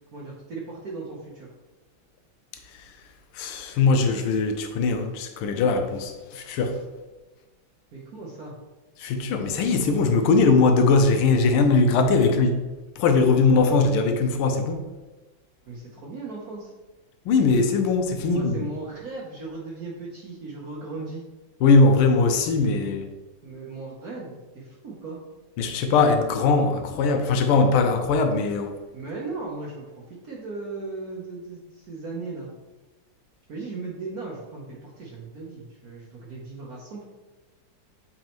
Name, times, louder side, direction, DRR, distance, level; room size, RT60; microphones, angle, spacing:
voice 1, 0.1-1.5 7.9-8.6 15.7-16.7 18.2-21.2 23.4-25.2 28.9-32.5 33.5-37.0, right 3 dB, 55° right, -3 dB, 1.1 m, -37 dB
voice 2, 3.3-6.8 9.0-12.6 13.0-14.8 17.3-18.7 21.6-23.1 25.6-28.7, left 4 dB, 85° left, 6 dB, 1.5 m, -20 dB
7.5 x 4.1 x 3.0 m, 1.2 s
omnidirectional pair, 2.4 m